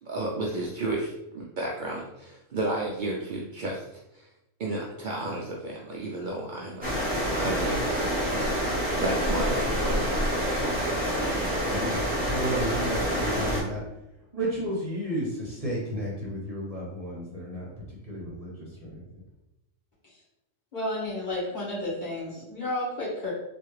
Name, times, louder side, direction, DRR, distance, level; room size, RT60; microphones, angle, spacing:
voice 1, 0.0-3.8 4.1-4.3 4.6-6.8 7.1-8.4 8.7-10.3, right 2 dB, 80° right, -3 dB, 0.4 m, -32 dB
sound 1, 6.8-13.6, equal, 5° right, 1.0 m, -27 dB
voice 2, 11.6-13.8 14.3-19.2, right 1 dB, 35° right, -5 dB, 0.8 m, -33 dB
voice 3, 20.7-23.3, left 1 dB, 35° left, -8 dB, 1.4 m, -31 dB
3.3 x 2.5 x 3.1 m, 0.89 s
omnidirectional pair, 1.4 m